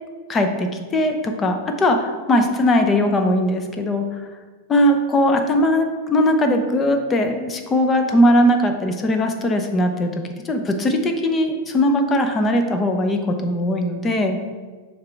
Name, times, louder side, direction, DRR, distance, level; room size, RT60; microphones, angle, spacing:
voice 1, 0.3-4.3 4.7-14.4, left 1 dB, 20° left, 5 dB, 0.8 m, -19 dB
6.6 x 3.4 x 4.6 m, 1.4 s
hypercardioid pair, 115°, 0 cm